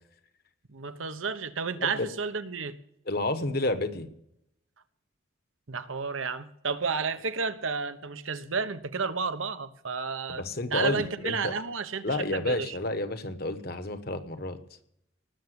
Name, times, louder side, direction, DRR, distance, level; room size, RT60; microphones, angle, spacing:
voice 1, 0.7-2.7 5.7-10.4 10.7-12.8, right 5 dB, 75° right, 11 dB, 1.0 m, -31 dB
voice 2, 3.1-4.1 10.3-11.5 12.0-14.6, left 2 dB, 50° left, 10 dB, 1.2 m, -30 dB
19.5 x 7.1 x 8.0 m, 0.77 s
head